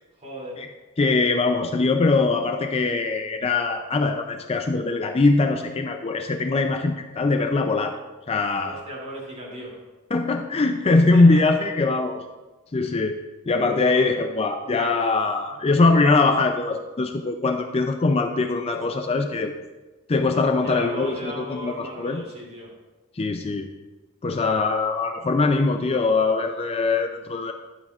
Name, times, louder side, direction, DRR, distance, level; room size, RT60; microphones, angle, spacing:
voice 1, 0.2-0.6 8.6-9.8 11.1-11.5 13.8-14.2 20.6-22.7, equal, 30° right, -3 dB, 2.7 m, -36 dB
voice 2, 1.0-7.9 8.3-8.8 10.1-12.2 12.7-19.6 20.1-22.2 23.2-23.7 24.2-27.5, left 3 dB, 25° left, 5 dB, 0.4 m, -22 dB
11.5 x 9.1 x 2.4 m, 1.2 s
head